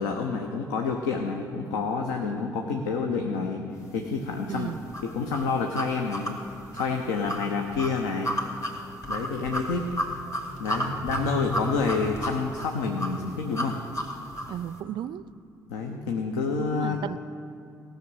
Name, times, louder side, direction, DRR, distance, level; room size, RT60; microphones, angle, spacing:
voice 1, 0.0-3.6 3.9-4.7 5.0-6.4 6.7-8.4 9.1-9.9 10.6-13.8 15.7-17.0, left 4 dB, 70° left, 3 dB, 0.8 m, -28 dB
sound 1, 4.5-14.6, equal, 30° left, 2.0 m, -33 dB
voice 2, 4.5-4.8 14.5-15.3 16.5-17.2, right 11 dB, 50° right, 17 dB, 0.4 m, -34 dB
17.5 x 6.4 x 6.4 m, 2.6 s
figure-of-eight pair, 45°, 10 cm